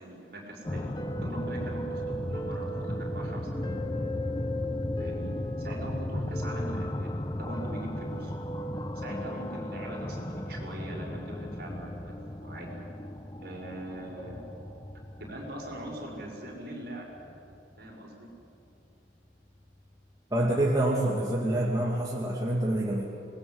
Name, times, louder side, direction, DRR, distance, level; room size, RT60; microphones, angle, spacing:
voice 1, 0.0-4.1 5.0-5.3 5.6-7.1 7.4-8.3 8.9-10.2 10.5-12.1 12.4-12.9 13.4-14.4 15.2-17.1 17.8-18.3, right 1 dB, 55° right, -1 dB, 5.8 m, -41 dB
sound 1, 0.6-17.9 19.6-19.7 20.0-20.1, left 1 dB, 20° left, 0.8 m, -35 dB
voice 2, 20.3-23.0, right 1 dB, 20° right, -3 dB, 2.3 m, -26 dB
26.0 x 21.0 x 8.0 m, 2.7 s
head